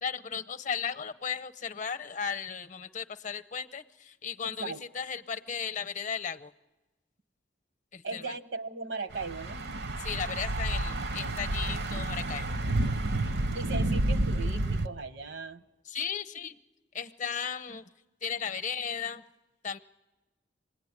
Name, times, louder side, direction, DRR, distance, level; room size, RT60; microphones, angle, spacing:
voice 1, 0.0-6.5 7.9-8.2 10.0-12.6 15.9-16.6 16.9-17.8 18.2-19.2 19.6-19.8, left 7 dB, 45° left, 11 dB, 0.7 m, -35 dB
voice 2, 8.0-9.6 13.5-15.6, right 4 dB, 75° right, 9 dB, 1.1 m, -38 dB
Thunder / Bicycle, 9.1-14.9, right 2 dB, 60° right, 0.8 m, -30 dB
26.0 x 19.5 x 9.6 m, 1.2 s
head